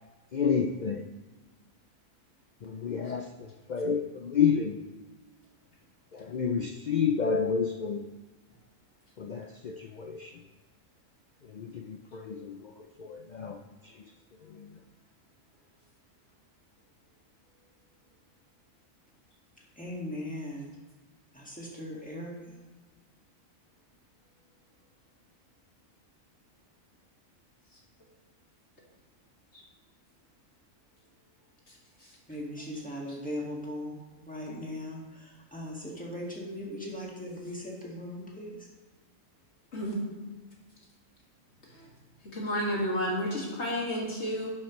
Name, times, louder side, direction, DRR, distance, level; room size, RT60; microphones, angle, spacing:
voice 1, 0.3-1.1 2.6-4.8 6.1-8.1 9.2-10.4 11.4-14.1 14.4-14.8, left 6 dB, 75° left, 3 dB, 0.4 m, -30 dB
voice 2, 19.8-20.7 21.3-22.3 32.3-34.0 34.3-38.6, left 1 dB, 5° left, -4 dB, 1.8 m, -38 dB
voice 3, 42.3-44.5, equal, 55° left, -3 dB, 2.4 m, -31 dB
11.5 x 7.4 x 3.1 m, 1.3 s
omnidirectional pair, 1.4 m